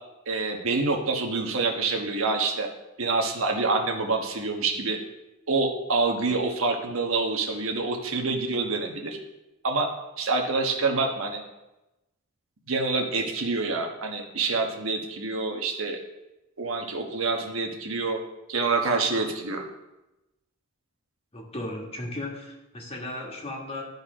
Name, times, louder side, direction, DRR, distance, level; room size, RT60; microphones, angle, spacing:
voice 1, 0.3-2.7 3.0-5.0 5.5-9.2 9.6-9.9 10.2-11.4 12.7-16.0 16.6-18.2 18.5-19.6, right 3 dB, 85° right, 2 dB, 1.3 m, -26 dB
voice 2, 21.3-23.8, left 1 dB, 30° left, -1 dB, 1.6 m, -35 dB
12.5 x 4.1 x 5.0 m, 0.97 s
head